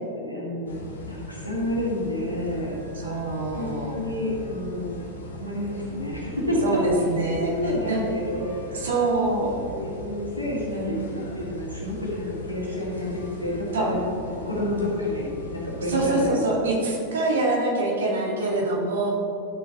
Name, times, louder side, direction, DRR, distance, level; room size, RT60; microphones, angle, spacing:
voice 1, 0.2-0.8 1.1-2.8 3.5-5.0 5.4-6.8 7.4-14.0 14.3-16.4, left 1 dB, 85° left, -4 dB, 2.0 m, -29 dB
sound 1, 0.7-16.4, left 1 dB, 70° left, 1.0 m, -39 dB
voice 2, 2.9-4.0 6.6-8.1 8.7-9.6 10.7-11.2 13.7-13.9 15.9-19.1, right 2 dB, 65° right, -3 dB, 1.9 m, -25 dB
12.0 x 6.0 x 2.9 m, 2.7 s
figure-of-eight pair, 90°, 0 cm